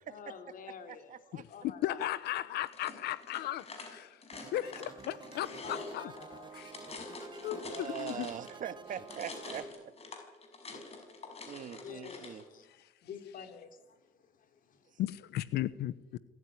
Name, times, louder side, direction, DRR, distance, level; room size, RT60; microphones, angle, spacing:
voice 1, 0.1-2.1 5.6-6.6 10.7-11.5 11.8-15.0, left 7 dB, 55° left, 7 dB, 3.4 m, -50 dB
voice 2, 0.9-1.4 7.6-9.9 11.5-12.4 14.9-15.0 15.5-15.6, right 9 dB, 50° right, 11 dB, 1.7 m, -42 dB
voice 3, 1.8-3.6 4.5-6.1 6.6-6.7 7.4-8.3 15.0-15.9, left 13 dB, 75° left, 16 dB, 0.9 m, -35 dB
sound 1, 2.7-8.6 8.9-12.4, left 3 dB, 35° left, 5.9 m, -46 dB
sound 2, 4.3-9.6, right 6 dB, 25° right, 1.1 m, -51 dB
26.0 x 14.5 x 10.0 m, 1.1 s
cardioid pair, 110°, 17 cm